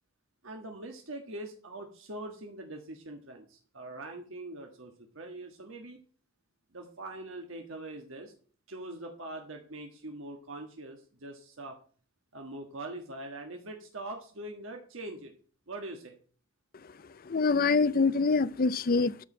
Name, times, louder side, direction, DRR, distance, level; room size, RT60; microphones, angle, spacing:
voice 1, 0.4-6.0 6.7-8.3 8.7-11.8 12.3-15.3 15.7-16.2, right 2 dB, 65° right, 1.5 m, -43 dB
voice 2, 17.3-19.2, left 4 dB, 45° left, 0.5 m, -25 dB
12.5 x 4.9 x 6.0 m
head